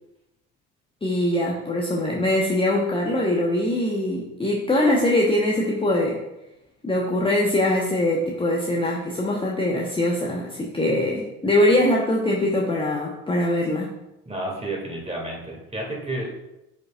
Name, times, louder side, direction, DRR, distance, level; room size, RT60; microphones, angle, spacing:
voice 1, 1.0-6.2 6.8-13.9, left 1 dB, 10° left, -2 dB, 1.0 m, -22 dB
voice 2, 14.3-16.3, right 1 dB, 15° right, -1 dB, 2.3 m, -31 dB
8.1 x 5.2 x 2.4 m, 0.91 s
figure-of-eight pair, 60°, 45 cm